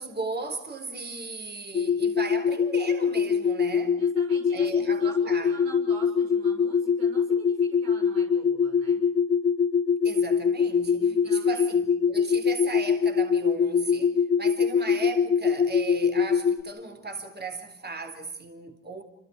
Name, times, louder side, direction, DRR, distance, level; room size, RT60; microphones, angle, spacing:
voice 1, 0.0-4.0 4.5-5.6 10.0-19.0, right 3 dB, 25° right, 4.0 m, -37 dB
sound 1, 1.7-16.6, left 6 dB, 30° left, 1.6 m, -24 dB
voice 2, 3.9-9.0 11.0-11.8, right 3 dB, 90° right, 7.0 m, -46 dB
28.0 x 26.0 x 4.9 m
hypercardioid pair, 60°, 39 cm